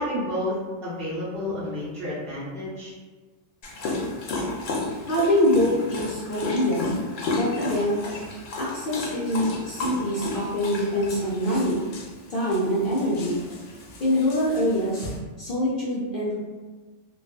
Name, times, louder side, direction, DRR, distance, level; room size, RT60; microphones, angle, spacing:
voice 1, 0.0-2.9, left 1 dB, 55° right, -9 dB, 1.0 m, -30 dB
Dog, 3.6-15.2, left 2 dB, 85° left, 0.9 m, -33 dB
voice 2, 5.1-7.0 7.3-8.0 8.6-11.9 12.3-13.4 14.0-15.1 15.4-16.4, equal, 55° left, -7 dB, 0.6 m, -24 dB
2.4 x 2.3 x 2.2 m, 1.3 s
omnidirectional pair, 1.3 m